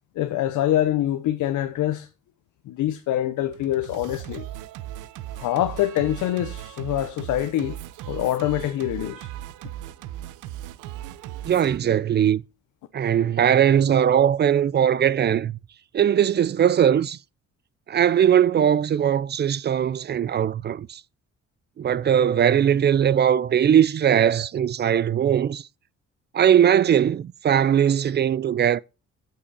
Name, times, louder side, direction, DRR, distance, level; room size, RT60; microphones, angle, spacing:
voice 1, 0.2-2.1 2.7-4.5 5.4-7.8 8.1-9.3 11.6-11.7, left 13 dB, 80° left, 0.8 m, -25 dB
Singing, 3.5-11.8, right 13 dB, 85° right, 0.6 m, -37 dB
voice 2, 11.4-12.4 12.9-15.5 15.9-17.2 17.9-21.0 21.8-25.6 26.3-28.8, right 9 dB, 35° right, 0.4 m, -20 dB
8.5 x 5.7 x 4.1 m
cardioid pair, 90°, 30 cm